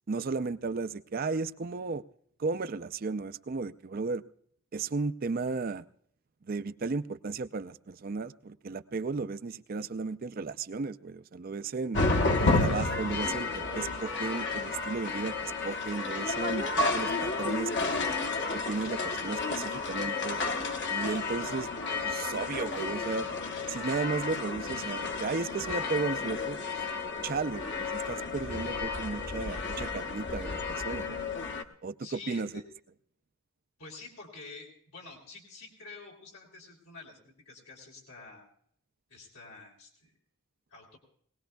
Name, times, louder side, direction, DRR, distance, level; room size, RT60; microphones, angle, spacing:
voice 1, 0.1-2.0 2.4-4.2 4.7-5.8 6.4-12.0 12.4-18.0 18.5-20.4 20.9-21.7 22.0-23.3 23.7-26.6 27.2-31.2 31.8-32.5, right 4 dB, 45° right, 0.4 m, -34 dB
sound 1, 11.9-31.6, left 3 dB, 55° left, 1.0 m, -31 dB
voice 2, 32.0-32.6 33.8-38.5 39.1-40.1 40.7-41.0, left 3 dB, 85° left, 3.2 m, -48 dB
22.0 x 18.5 x 2.3 m
head